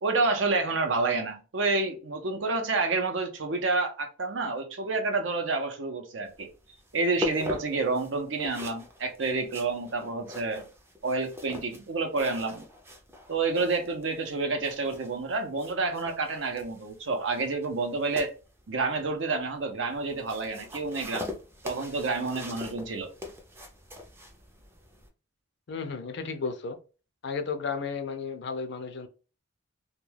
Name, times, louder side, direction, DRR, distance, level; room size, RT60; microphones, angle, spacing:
voice 1, 0.0-6.5 6.9-10.7 11.0-12.6 13.3-18.3 18.7-21.3 21.6-23.1, right 3 dB, 65° right, 0.6 m, -29 dB
sound 1, 6.2-25.1, left 2 dB, 10° right, 0.4 m, -42 dB
voice 2, 25.7-26.8 27.2-29.1, left 5 dB, 60° left, 0.4 m, -33 dB
2.2 x 2.2 x 3.2 m
head